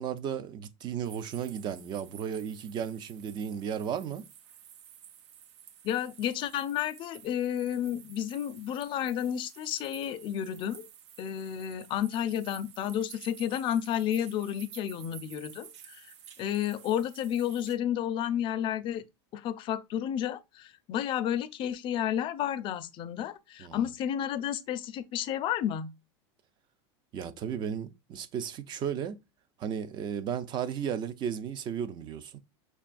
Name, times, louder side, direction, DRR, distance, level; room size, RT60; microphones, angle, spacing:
voice 1, 0.0-4.3 23.6-23.9 27.1-29.2 29.6-32.4, right 8 dB, 30° right, 0.4 m, -34 dB
sound 1, 1.0-17.8, right 9 dB, 85° right, 0.5 m, -52 dB
voice 2, 5.8-10.9 11.2-16.1 16.4-19.0 19.3-25.9, left 10 dB, 35° left, 0.4 m, -31 dB
5.3 x 2.2 x 2.4 m
supercardioid pair, 130°, 14 cm